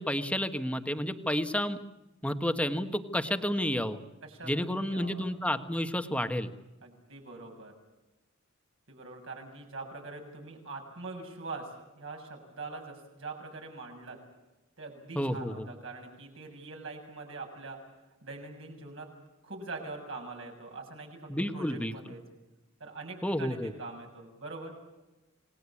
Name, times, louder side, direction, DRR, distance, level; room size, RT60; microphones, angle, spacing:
voice 1, 0.0-1.8 2.2-4.0 4.4-6.5 15.1-15.7 21.3-21.9 23.2-23.7, equal, 5° left, 8 dB, 1.4 m, -30 dB
voice 2, 4.2-5.3 6.8-7.7 8.9-11.7 11.9-14.2 14.8-17.8 18.2-19.1 19.4-22.2 22.8-24.7, right 3 dB, 70° right, 2 dB, 7.0 m, -43 dB
28.5 x 19.5 x 8.5 m, 1.0 s
head